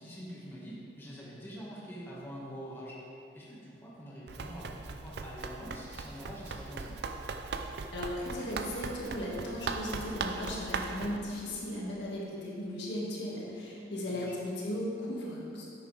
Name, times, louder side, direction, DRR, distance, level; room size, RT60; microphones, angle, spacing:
voice 1, 0.0-3.0 3.3-7.0 13.9-14.4, equal, 15° left, -6 dB, 1.7 m, -45 dB
Run, 4.3-11.2, right 4 dB, 65° right, 0.5 m, -39 dB
voice 2, 7.9-15.6, left 1 dB, 75° left, -4 dB, 2.0 m, -36 dB
10.5 x 8.2 x 3.4 m, 2.8 s
head